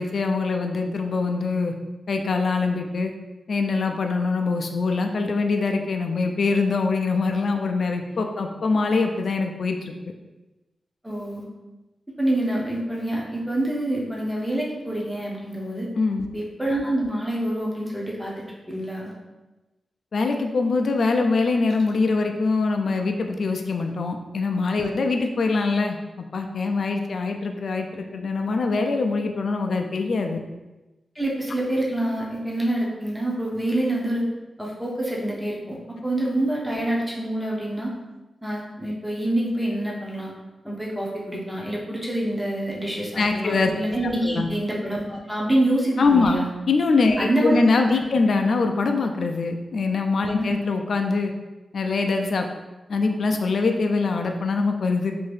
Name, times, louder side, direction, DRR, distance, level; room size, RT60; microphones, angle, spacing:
voice 1, 0.0-1.7 2.1-3.1 3.5-9.9 15.9-16.3 20.1-30.4 43.2-43.7 44.2-44.5 46.0-46.4 46.7-51.3 51.7-52.5 52.9-55.1, left 3 dB, 65° left, 4 dB, 0.3 m, -23 dB
voice 2, 11.0-11.5 12.2-15.9 16.3-19.1 31.2-34.3 34.6-37.9 38.4-40.3 40.6-46.5 47.1-47.6 50.4-50.5, right 1 dB, 5° right, -4 dB, 0.7 m, -26 dB
2.7 x 2.5 x 3.2 m, 1.1 s
wide cardioid pair, 95°, 0 cm